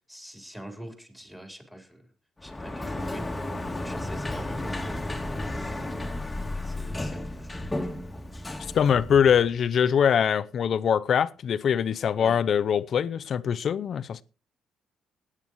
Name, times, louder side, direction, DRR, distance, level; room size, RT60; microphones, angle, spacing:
voice 1, 0.1-2.1 2.4-3.3 3.7-6.1 6.6-8.0 12.2-12.4, right 1 dB, 5° right, 4.3 m, -44 dB
Sliding door, 2.4-9.5, left 1 dB, 15° left, 2.0 m, -33 dB
voice 2, 8.7-14.2, left 8 dB, 60° left, 0.6 m, -23 dB
19.0 x 9.9 x 3.1 m
cardioid pair, 90°, 0 cm